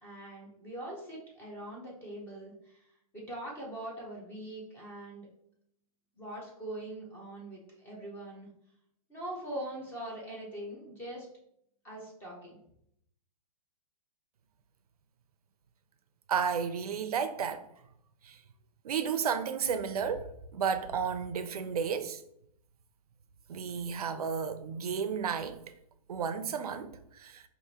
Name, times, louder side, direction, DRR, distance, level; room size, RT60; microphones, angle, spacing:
voice 1, 0.0-2.8 3.1-5.3 6.2-8.5 9.1-11.3 11.8-12.6, right 1 dB, 10° left, 0.8 m, -42 dB
voice 2, 16.3-17.6 18.3-18.4 18.8-22.2 23.5-25.6 26.1-27.4, right 6 dB, 80° right, 0.5 m, -32 dB
4.7 x 2.6 x 2.8 m
hypercardioid pair, 160°, 19 cm